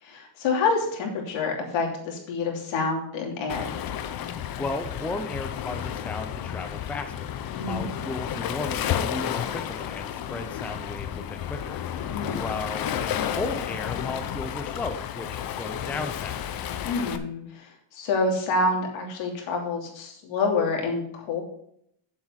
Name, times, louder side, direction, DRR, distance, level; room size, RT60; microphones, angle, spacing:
voice 1, 0.0-3.7 7.5-7.9 12.1-12.4 16.8-21.4, left 3 dB, 75° left, 1 dB, 3.0 m, -27 dB
Waves surf, 3.5-17.2, left 10 dB, 50° left, 0.8 m, -32 dB
voice 2, 4.6-16.4, left 2 dB, 5° left, 7 dB, 0.4 m, -35 dB
7.6 x 7.5 x 5.6 m, 0.71 s
cardioid pair, 175°, 47 cm